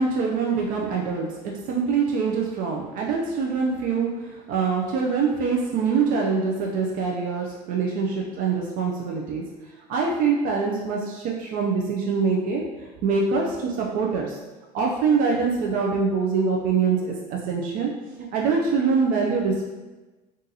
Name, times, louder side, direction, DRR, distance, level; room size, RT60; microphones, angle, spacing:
voice 1, 0.0-9.4 9.9-12.6 13.0-14.4 14.7-17.9 18.3-19.6, right 5 dB, 55° right, -1 dB, 0.5 m, -24 dB
3.9 x 2.5 x 2.7 m, 1.2 s
cardioid pair, 130°, 16 cm